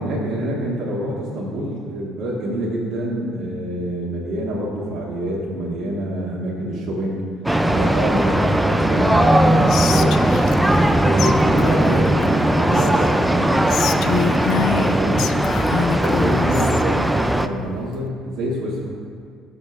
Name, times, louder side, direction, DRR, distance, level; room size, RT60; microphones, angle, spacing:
voice 1, 0.0-7.2 7.7-10.2 10.9-15.3 15.9-18.8, right 1 dB, 55° right, -7 dB, 1.5 m, -26 dB
sound 1, 7.5-17.5, right 1 dB, 5° right, 0.4 m, -18 dB
Whispering, 9.7-10.9 11.2-11.3 11.6-13.1 13.7-16.8, left 9 dB, 65° left, 0.4 m, -27 dB
14.5 x 6.5 x 2.5 m, 2.2 s
cardioid pair, 105°, 0 cm